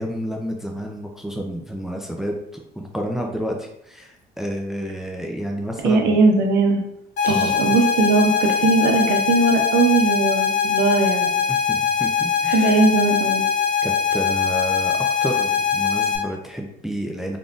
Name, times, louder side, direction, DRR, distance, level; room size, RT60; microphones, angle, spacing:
voice 1, 0.0-6.2 7.3-7.8 11.5-12.8 13.8-17.4, equal, ahead, 1 dB, 0.5 m, -30 dB
voice 2, 5.8-6.8 7.2-11.5 12.4-13.4, right 3 dB, 80° right, 3 dB, 0.8 m, -19 dB
sound 1, 7.2-16.2, left 7 dB, 80° left, 1.1 m, -22 dB
3.8 x 3.6 x 2.4 m, 0.78 s
cardioid pair, 110°, 17 cm